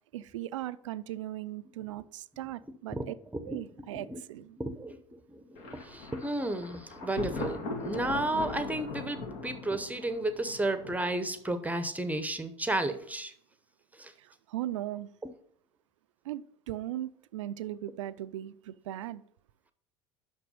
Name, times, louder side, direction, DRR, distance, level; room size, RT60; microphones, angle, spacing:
voice 1, 0.0-3.1 3.5-4.6 14.2-15.1 16.2-19.2, right 13 dB, 75° right, 0.4 m, -38 dB
voice 2, 4.6-13.3 14.0-14.1, right 1 dB, 10° right, 0.8 m, -33 dB
Thunder, 5.6-11.4, left 3 dB, 65° left, 1.8 m, -40 dB
6.0 x 6.0 x 5.3 m
hypercardioid pair, 70°, 16 cm